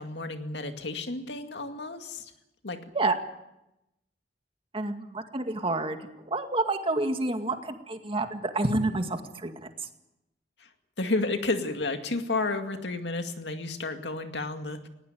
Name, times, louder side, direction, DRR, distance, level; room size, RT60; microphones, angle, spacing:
voice 1, 0.0-2.3 2.6-2.8 10.6-10.7 11.0-14.9, left 2 dB, 80° left, 6 dB, 2.3 m, -31 dB
voice 2, 4.7-6.0 6.2-9.5, right 2 dB, 30° right, 6 dB, 2.1 m, -28 dB
19.5 x 17.5 x 9.3 m, 0.90 s
head